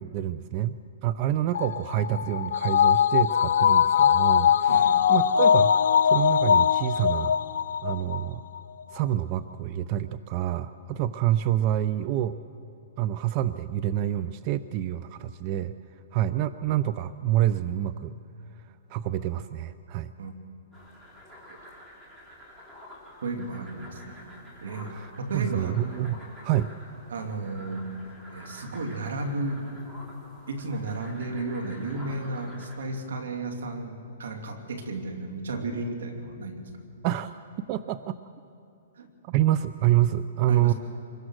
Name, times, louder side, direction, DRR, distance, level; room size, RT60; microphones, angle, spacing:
voice 1, 0.0-0.7 1.0-7.4 7.8-8.4 8.9-12.4 13.0-15.7 16.1-18.1 18.9-20.1 24.9-26.7 37.0-37.4 37.7-38.2 39.2-40.7, right 12 dB, 35° right, 13 dB, 0.5 m, -27 dB
sound 1, 1.5-8.2 8.6-8.7, left 8 dB, 75° left, 0.7 m, -21 dB
sound 2, 20.7-32.9, left 1 dB, 10° right, 3.7 m, -48 dB
voice 2, 23.2-24.2 24.6-25.8 27.1-27.9 28.3-29.7 30.5-36.7 39.0-39.1 40.5-40.7, right 2 dB, 80° right, 4 dB, 3.0 m, -33 dB
25.5 x 22.0 x 6.4 m, 2.6 s
hypercardioid pair, 150°, 0 cm